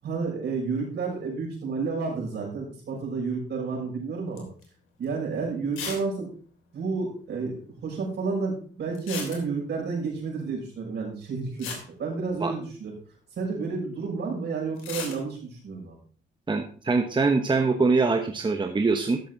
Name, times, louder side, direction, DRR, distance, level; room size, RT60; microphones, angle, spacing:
voice 1, 0.0-4.5 5.0-6.3 6.7-7.5 7.8-11.7 12.0-12.9 13.4-16.0, right 4 dB, 60° right, -2 dB, 6.4 m, -30 dB
sound 1, 4.4-4.6 5.0-5.1 5.7-6.1 6.3-6.4 6.6-6.7 8.9-9.8 11.2-11.3 11.6-12.8 14.7-15.2, left 5 dB, 85° left, 3.3 m, -36 dB
voice 2, 16.5-19.2, right 4 dB, 25° right, 5 dB, 1.0 m, -23 dB
13.5 x 6.9 x 3.9 m, 0.43 s
cardioid pair, 90°, 20 cm